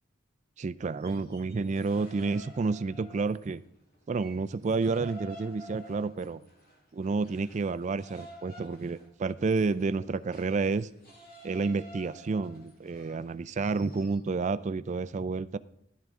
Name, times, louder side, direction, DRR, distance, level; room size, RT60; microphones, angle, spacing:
voice 1, 0.6-3.6 4.1-6.4 6.9-10.9 11.4-15.6, right 4 dB, 35° right, 15 dB, 0.3 m, -30 dB
sound 1, 1.0-3.6 3.9-14.2, right 1 dB, 50° left, 6.0 m, -51 dB
15.5 x 10.5 x 3.7 m, 0.75 s
head